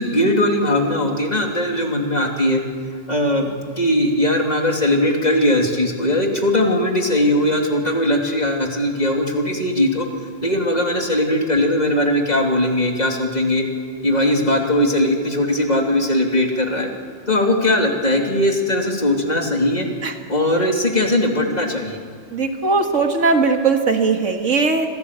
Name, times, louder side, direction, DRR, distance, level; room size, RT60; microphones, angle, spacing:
voice 1, 0.0-2.6 3.1-10.1 10.4-13.6 14.0-16.9 17.3-19.9 20.3-22.0, left 1 dB, 35° left, 1 dB, 2.9 m, -19 dB
voice 2, 22.3-24.9, right 4 dB, 85° right, 4 dB, 2.2 m, -19 dB
25.5 x 17.0 x 8.3 m, 2.1 s
omnidirectional pair, 1.2 m